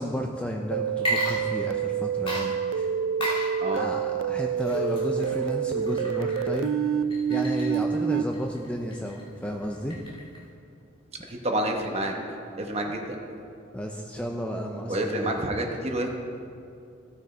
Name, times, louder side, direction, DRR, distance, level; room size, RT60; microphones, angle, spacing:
voice 1, 0.0-2.9 3.2-3.3 3.7-6.8 7.3-10.0 12.9-13.0 13.7-15.4, equal, 5° left, 1 dB, 0.5 m, -33 dB
sound 1, 0.7-8.2, right 7 dB, 75° right, 0.3 m, -27 dB
Water / Liquid, 0.9-1.9 2.3-10.5, equal, 25° left, 2.2 m, -35 dB
voice 2, 11.3-12.1 12.6-13.2 14.9-16.1, right 1 dB, 30° right, 2 dB, 1.1 m, -28 dB
15.5 x 6.3 x 4.4 m, 2.5 s
head